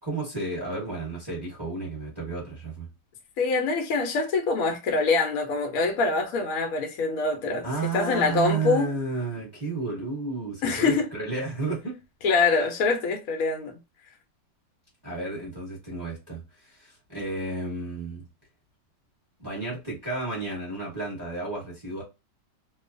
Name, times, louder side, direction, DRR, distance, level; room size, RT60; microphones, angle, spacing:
voice 1, 0.0-2.9 7.6-12.0 15.0-18.2 19.4-22.0, right 3 dB, 15° right, 0.9 m, -32 dB
voice 2, 3.4-8.9 10.6-11.1 12.2-13.7, left 4 dB, 65° left, 0.9 m, -24 dB
2.9 x 2.2 x 2.4 m
omnidirectional pair, 2.0 m